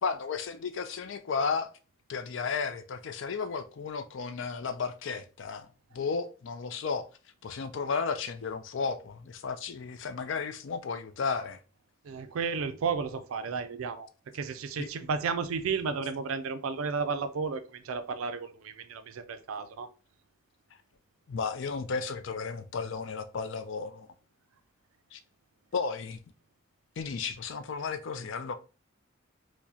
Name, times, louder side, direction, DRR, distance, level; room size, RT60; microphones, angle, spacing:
voice 1, 0.0-1.7 2.1-5.7 5.9-7.1 7.4-11.6 14.8-14.9 21.3-24.1 25.1-25.2 25.7-26.2 27.0-28.5, left 5 dB, 65° left, 0.4 m, -33 dB
voice 2, 12.0-14.1 14.3-19.9, right 5 dB, 90° right, 0.4 m, -33 dB
4.6 x 2.1 x 2.7 m
head